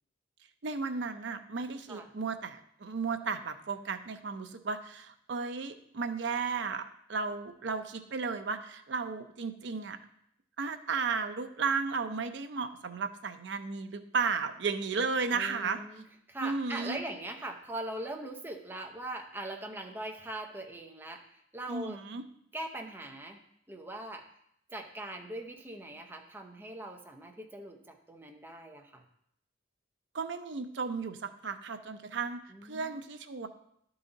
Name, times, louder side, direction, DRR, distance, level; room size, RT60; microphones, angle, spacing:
voice 1, 0.6-10.0 10.6-15.8 16.4-17.0 21.7-22.2 30.1-33.5, right 4 dB, 60° right, 8 dB, 0.6 m, -34 dB
voice 2, 15.3-22.0 22.5-23.4 23.7-24.3 24.7-29.0 32.5-33.0, right 1 dB, 10° right, 2 dB, 0.7 m, -41 dB
11.0 x 3.9 x 3.9 m, 0.73 s
head